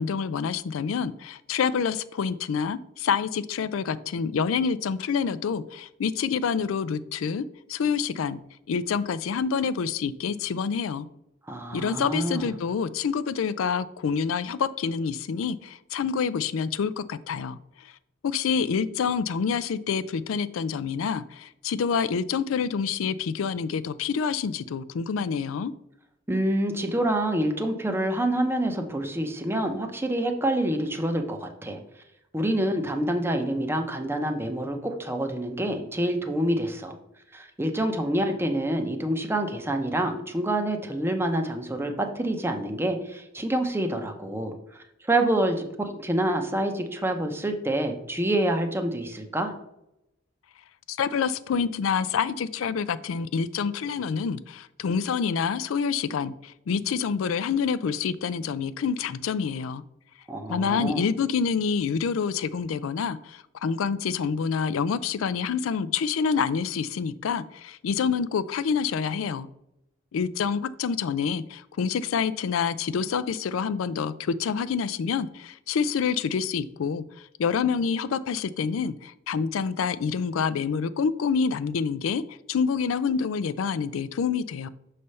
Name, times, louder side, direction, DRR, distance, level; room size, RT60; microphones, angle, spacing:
voice 1, 0.0-8.4 8.7-11.1 11.7-17.6 18.2-25.7 50.9-59.8 60.5-69.5 70.1-77.0 77.4-84.7, left 6 dB, 85° left, 15 dB, 0.4 m, -27 dB
voice 2, 11.5-12.5 26.3-31.8 32.3-36.9 37.3-49.5 60.3-61.1, right 1 dB, 10° right, 5 dB, 0.7 m, -27 dB
6.7 x 3.3 x 5.4 m, 0.83 s
head